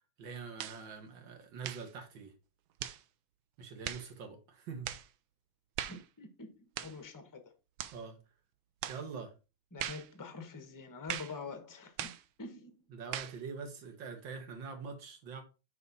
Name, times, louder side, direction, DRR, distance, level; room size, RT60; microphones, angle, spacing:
voice 1, 0.2-2.3 3.6-4.9 7.9-8.2 8.9-9.3 12.9-15.4, right 5 dB, 65° right, 2.1 m, -44 dB
sound 1, 0.6-0.8 1.6-1.9 2.8-3.0 3.8-4.1 4.8-5.1 5.8-6.1 6.8-7.0 7.8-8.0 8.8-9.0 9.8-10.1 11.1-11.4 12.0-12.2 13.1-13.4, right 11 dB, 80° right, 1.4 m, -40 dB
voice 2, 5.9-7.5 9.7-12.1 12.4-12.7, left 4 dB, 20° left, 0.6 m, -46 dB
6.3 x 5.5 x 4.0 m
omnidirectional pair, 2.3 m